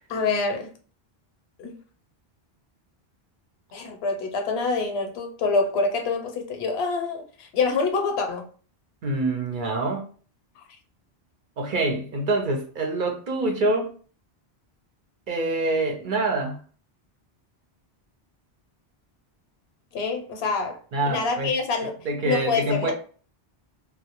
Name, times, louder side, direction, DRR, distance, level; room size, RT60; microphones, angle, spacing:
voice 1, 0.1-0.7 1.6-1.8 3.7-8.4 19.9-20.8 21.1-21.9 22.2-22.9, left 4 dB, 75° left, 0.8 m, -26 dB
voice 2, 9.0-10.0 11.6-13.9 15.3-16.6 20.9-21.5 22.0-22.9, right 2 dB, 60° right, 0.7 m, -25 dB
2.2 x 2.0 x 2.8 m
omnidirectional pair, 1.1 m